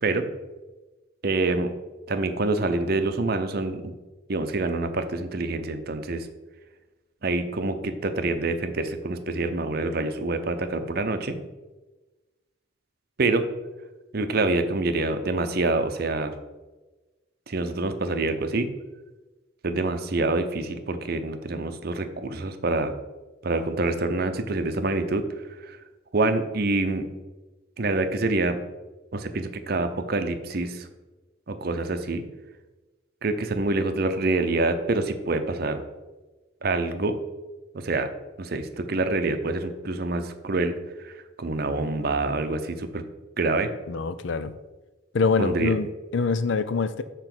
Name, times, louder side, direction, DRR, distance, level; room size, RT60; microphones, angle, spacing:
voice 1, 1.2-1.7 2.1-3.9 4.3-6.3 7.2-11.4 13.2-13.5 14.1-16.3 17.5-18.7 19.6-22.9 23.4-25.3 25.6-25.8 26.1-27.1 27.8-28.6 29.1-30.9 31.5-32.2 33.2-35.8 36.6-37.2 37.7-38.1 38.4-40.7 41.0-43.0 43.4-43.7 45.4-45.7, right 2 dB, 50° right, 8 dB, 0.6 m, -26 dB
voice 2, 43.9-44.6 45.1-47.0, left 4 dB, 65° left, 12 dB, 0.5 m, -25 dB
7.0 x 4.3 x 6.0 m, 1.2 s
head